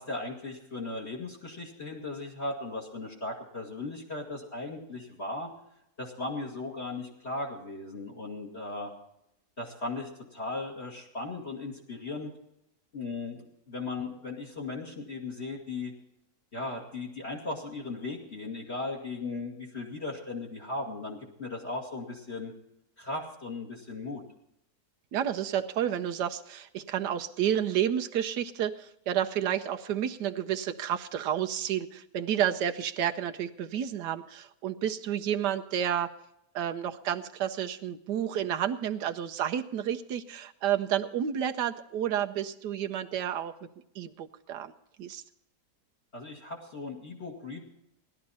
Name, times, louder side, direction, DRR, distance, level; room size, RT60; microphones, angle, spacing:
voice 1, 0.0-5.5 6.0-8.9 9.6-12.3 12.9-15.9 16.5-22.5 23.0-24.2 46.1-47.6, left 3 dB, 40° left, -1 dB, 2.4 m, -37 dB
voice 2, 25.1-36.1 36.5-43.5 43.9-44.7 45.0-45.2, right 10 dB, 90° right, 7 dB, 1.4 m, -30 dB
18.0 x 12.0 x 4.2 m, 0.81 s
omnidirectional pair, 1.8 m